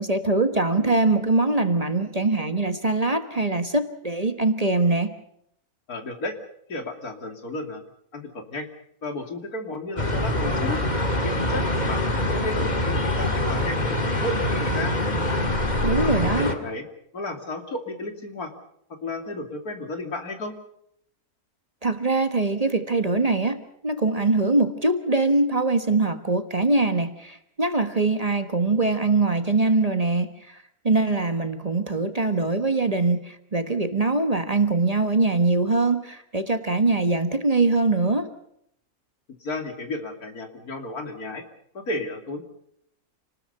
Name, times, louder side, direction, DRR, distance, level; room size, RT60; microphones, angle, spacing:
voice 1, 0.0-5.1 15.8-16.5 21.8-38.3, right 3 dB, 25° right, 8 dB, 1.4 m, -23 dB
voice 2, 5.9-6.4 6.7-7.8 8.1-8.7 9.0-10.8 11.2-14.9 15.9-16.8 17.1-18.5 18.9-20.5 39.4-41.4 41.7-42.4, left 2 dB, 80° left, 5 dB, 3.3 m, -33 dB
sound 1, 10.0-16.6, left 1 dB, 30° left, 2.2 m, -24 dB
28.5 x 20.0 x 5.5 m, 0.72 s
omnidirectional pair, 1.6 m